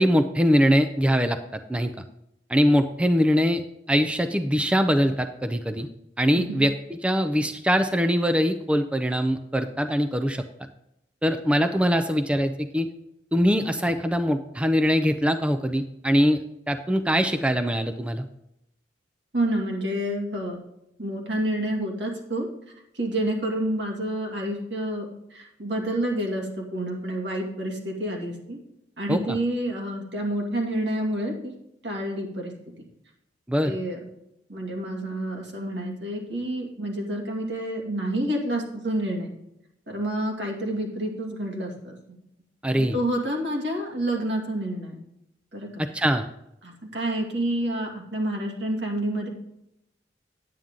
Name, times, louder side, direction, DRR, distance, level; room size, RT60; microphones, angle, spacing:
voice 1, 0.0-1.4 1.7-1.9 2.5-3.6 3.9-5.9 6.2-10.4 11.2-12.9 13.3-16.4 16.7-18.3 29.1-29.4 33.5-33.8 42.6-43.0 45.8-46.3, equal, 5° right, 7 dB, 0.5 m, -22 dB
voice 2, 19.3-20.6 21.0-22.5 23.0-25.0 25.3-28.6 29.0-31.5 31.8-32.5 33.6-34.0 34.5-39.3 39.9-42.0 42.7-45.0 45.5-45.7 46.6-49.3, right 1 dB, 80° right, 0 dB, 2.4 m, -28 dB
9.3 x 8.8 x 3.7 m, 0.82 s
head